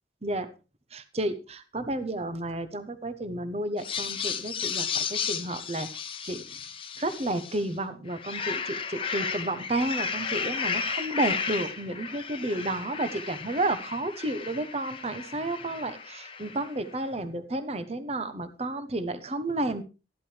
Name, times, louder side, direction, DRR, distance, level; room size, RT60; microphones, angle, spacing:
voice 1, 0.9-6.5 7.0-19.8, right 2 dB, 35° right, 12 dB, 1.0 m, -31 dB
sound 1, 3.8-7.7 8.1-16.8, left 6 dB, 30° left, 0.9 m, -34 dB
13.0 x 11.5 x 3.3 m, 0.30 s
head